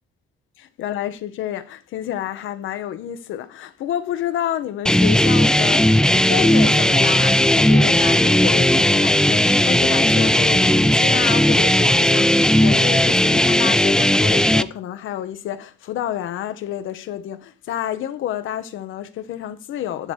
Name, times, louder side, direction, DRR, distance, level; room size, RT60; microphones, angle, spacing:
voice 1, 0.8-20.1, left 11 dB, 80° left, 0.9 m, -29 dB
sound 1, 4.9-14.6, left 1 dB, 5° left, 0.5 m, -16 dB
10.5 x 3.5 x 6.3 m
cardioid pair, 90°, 20 cm